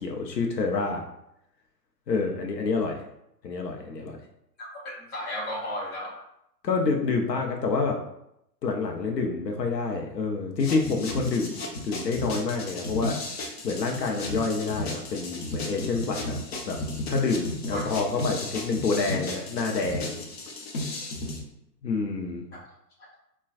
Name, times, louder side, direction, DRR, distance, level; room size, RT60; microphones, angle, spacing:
voice 1, 0.0-1.1 2.1-3.0 3.4-4.2 6.6-8.0 8.6-13.2 13.6-16.4 16.7-16.8 17.1-20.2 21.8-22.5, left 4 dB, 80° left, 2 dB, 0.7 m, -28 dB
voice 2, 4.6-6.2 17.7-17.8 23.0-23.1, equal, 20° left, -6 dB, 1.1 m, -34 dB
sound 1, 10.6-21.4, left 2 dB, 40° left, 0.7 m, -34 dB
4.1 x 2.2 x 2.4 m, 0.79 s
figure-of-eight pair, 115°, 49 cm